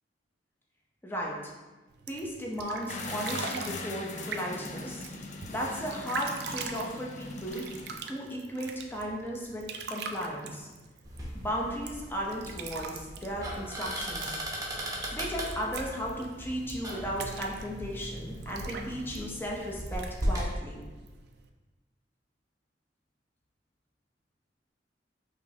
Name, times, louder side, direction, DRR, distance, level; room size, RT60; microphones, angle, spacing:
voice 1, 1.0-1.5 2.1-5.0 5.5-7.7 8.0-10.7 11.3-14.4 15.1-20.8, equal, 10° left, -2 dB, 0.7 m, -35 dB
sound 1, 1.9-21.5, right 5 dB, 65° right, 0.4 m, -43 dB
sound 2, 2.9-8.0, left 3 dB, 45° left, 0.4 m, -40 dB
sound 3, 11.0-20.5, equal, 20° right, 0.8 m, -37 dB
5.2 x 3.1 x 2.8 m, 1.2 s
head